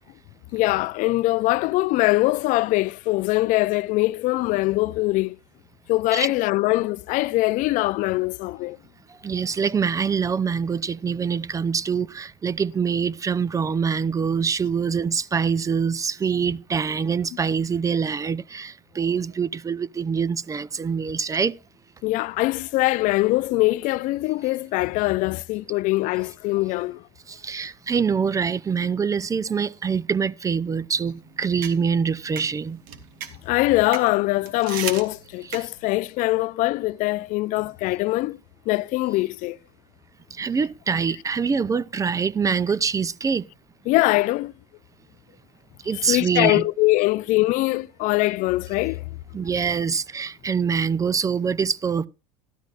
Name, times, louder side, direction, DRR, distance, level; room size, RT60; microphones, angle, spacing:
voice 1, 0.5-5.4 5.9-8.8 22.0-27.0 33.4-38.4 38.7-39.6 43.9-44.5 45.9-49.0, left 19 dB, 55° left, 0.4 m, -22 dB
voice 2, 9.1-21.5 27.3-32.8 40.3-43.4 45.8-46.6 49.3-52.1, right 6 dB, 20° right, 0.5 m, -25 dB
sound 1, 30.9-36.0, right 8 dB, 65° right, 1.4 m, -37 dB
13.0 x 12.5 x 2.4 m
hypercardioid pair, 85°, 16 cm